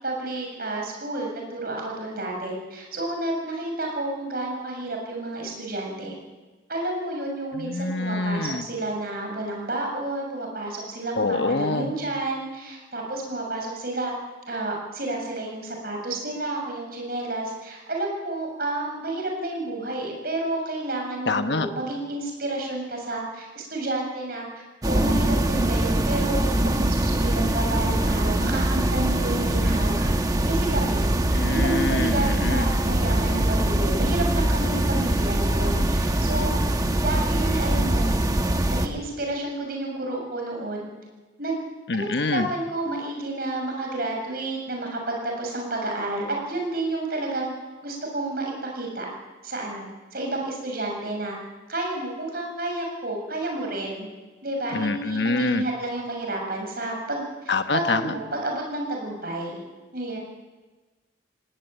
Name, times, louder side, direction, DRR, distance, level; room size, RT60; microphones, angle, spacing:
voice 1, 0.0-6.1 6.7-14.1 14.5-30.1 30.5-31.1 31.5-36.6 37.0-38.1 38.7-40.9 41.4-41.6 41.9-47.5 47.8-49.1 49.4-51.4 51.7-54.1 54.4-59.6 59.9-60.2, right 2 dB, 50° right, 1 dB, 7.0 m, -30 dB
voice 2, 7.5-8.6 11.2-11.9 21.3-21.7 31.2-32.7 41.9-42.5 54.7-55.6 57.5-58.1, left 3 dB, 65° left, 8 dB, 1.1 m, -25 dB
sound 1, 24.8-38.9, right 1 dB, 20° right, 1.1 m, -23 dB
19.0 x 18.0 x 9.0 m, 1.2 s
head